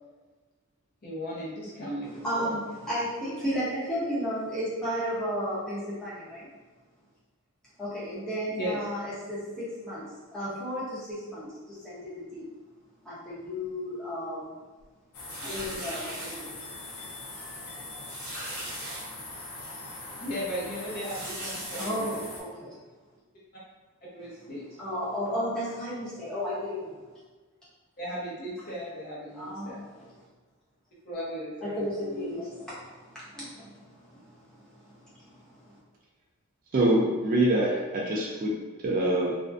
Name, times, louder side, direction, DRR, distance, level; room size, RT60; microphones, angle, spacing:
voice 1, 1.0-2.6 8.6-8.8 20.2-22.2 24.1-24.7 28.0-29.8 31.0-32.4, equal, 45° left, -6 dB, 0.7 m, -36 dB
voice 2, 2.2-6.5 7.8-12.5 13.0-14.5 15.4-16.5 21.8-22.7 24.8-27.0 29.3-30.0 31.6-35.7, equal, 5° left, -10 dB, 0.7 m, -34 dB
sound 1, 15.1-22.4, left 2 dB, 85° left, 0.6 m, -41 dB
sound 2, 15.3-16.4 17.0-17.1 17.4-17.5 18.0-19.0 19.6-19.7 21.0-21.9, right 1 dB, 85° right, 0.7 m, -39 dB
voice 3, 36.7-38.5 38.8-39.4, right 1 dB, 40° right, -3 dB, 0.3 m, -24 dB
2.5 x 2.1 x 2.4 m, 1.3 s
head